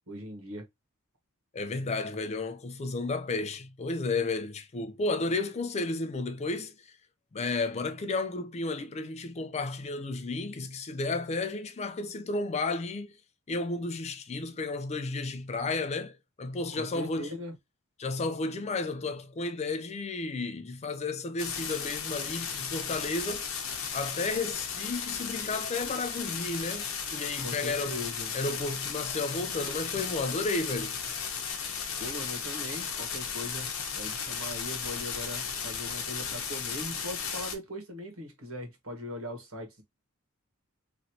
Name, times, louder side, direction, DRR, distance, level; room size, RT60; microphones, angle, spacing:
voice 1, 0.1-0.7 16.7-17.6 27.4-28.3 32.0-39.8, left 1 dB, 65° right, 1.2 m, -40 dB
voice 2, 1.5-6.9 7.3-13.2 13.5-17.3 18.0-23.7 23.9-28.0 28.3-31.0, left 3 dB, 30° left, 0.4 m, -33 dB
sound 1, 21.4-37.6, left 6 dB, 65° left, 0.9 m, -35 dB
3.1 x 2.7 x 2.7 m
head